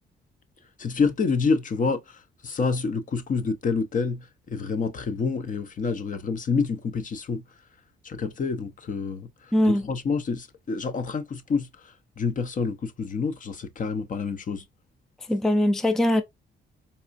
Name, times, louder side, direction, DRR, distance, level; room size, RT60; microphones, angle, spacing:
voice 1, 0.8-7.4 8.0-9.3 9.7-14.6, left 4 dB, 40° left, 0.7 m, -28 dB
voice 2, 9.5-9.8 15.3-16.2, left 1 dB, ahead, 0.4 m, -21 dB
4.1 x 2.3 x 2.5 m
cardioid pair, 90°, 20 cm